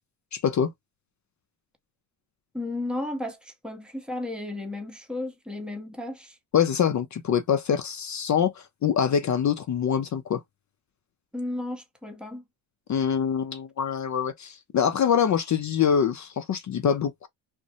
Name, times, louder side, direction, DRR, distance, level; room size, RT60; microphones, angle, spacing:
voice 1, 0.3-0.7 6.5-10.4 12.9-17.3, left 8 dB, 40° left, 0.4 m, -24 dB
voice 2, 2.5-6.3 11.3-12.4, left 2 dB, ahead, 0.7 m, -34 dB
2.6 x 2.0 x 2.6 m
cardioid pair, 75°, 49 cm